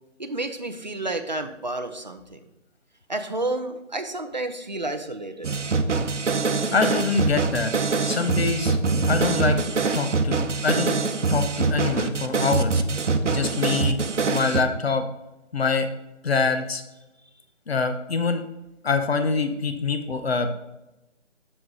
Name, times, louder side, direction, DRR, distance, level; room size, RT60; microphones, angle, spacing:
voice 1, 0.2-2.5 3.1-5.5, right 2 dB, 40° right, 6 dB, 0.6 m, -30 dB
sound 1, 5.4-14.6, right 4 dB, 70° right, 0.9 m, -24 dB
voice 2, 6.7-7.7 8.0-8.8 9.0-9.6 9.9-11.0 11.3-12.8 13.3-14.0 14.3-15.1 15.5-15.9 16.2-16.8 17.7-18.4 18.8-20.5, left 4 dB, 55° left, 8 dB, 0.9 m, -25 dB
7.9 x 6.1 x 3.8 m, 0.95 s
figure-of-eight pair, 175°, 37 cm